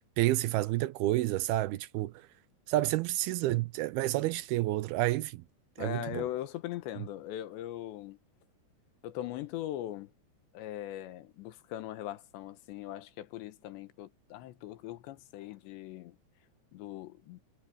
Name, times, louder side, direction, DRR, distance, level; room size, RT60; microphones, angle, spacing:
voice 1, 0.2-2.1 2.7-5.4 5.8-6.2, right 17 dB, 80° right, 2.3 m, -29 dB
voice 2, 5.8-8.2 9.0-10.1 10.5-16.2 16.7-17.4, left 13 dB, 90° left, 3.5 m, -40 dB
omnidirectional pair, 5.0 m